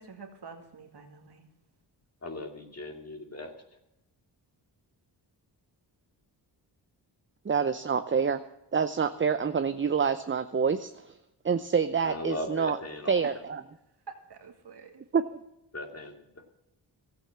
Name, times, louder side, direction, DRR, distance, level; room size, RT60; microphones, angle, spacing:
voice 1, 0.0-1.5 14.1-15.0, right 5 dB, 60° right, 4 dB, 2.3 m, -47 dB
voice 2, 2.2-3.5 12.0-13.2 15.7-16.1, left 1 dB, 35° left, 4 dB, 2.7 m, -38 dB
voice 3, 7.4-8.4 8.7-11.1 11.4-12.8 13.1-13.6 15.1-15.2, right 6 dB, 25° right, 11 dB, 0.7 m, -27 dB
13.5 x 8.7 x 7.4 m, 0.88 s
cardioid pair, 55°, 46 cm